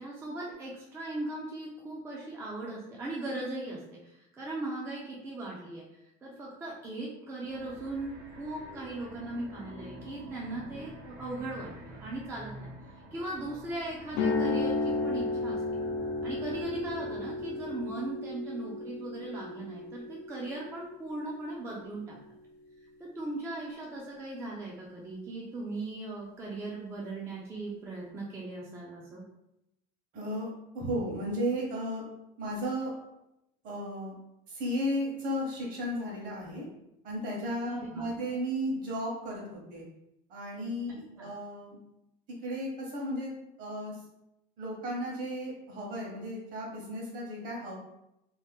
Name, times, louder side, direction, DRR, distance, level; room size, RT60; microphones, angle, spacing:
voice 1, 0.0-12.7 13.1-15.6 16.2-22.2 23.0-29.2 37.7-38.1 41.2-41.3, right 2 dB, 15° right, -4 dB, 0.3 m, -38 dB
sound 1, 7.4-18.1, right 1 dB, 70° right, 0.6 m, -48 dB
sound 2, 14.1-22.1, left 3 dB, 85° left, 0.6 m, -34 dB
voice 2, 30.1-30.5 30.7-32.0 32.4-32.9 33.6-34.2 34.5-36.6 37.0-39.9 40.3-41.8 42.4-43.3 43.6-44.0 44.6-47.8, equal, 45° right, -2 dB, 1.0 m, -34 dB
2.7 x 2.0 x 3.4 m, 0.87 s
cardioid pair, 165°, 19 cm